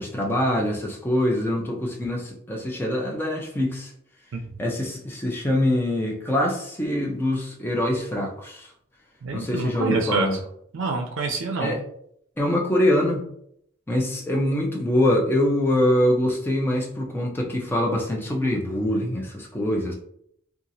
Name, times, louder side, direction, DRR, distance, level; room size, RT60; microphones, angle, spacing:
voice 1, 0.0-3.9 4.6-8.7 9.3-10.4 11.6-11.8 12.4-13.2 13.9-19.9, left 1 dB, 10° left, -1 dB, 0.5 m, -24 dB
voice 2, 9.2-10.3 10.7-11.7, right 3 dB, 90° right, 2 dB, 0.4 m, -26 dB
2.9 x 2.4 x 2.6 m, 0.69 s
head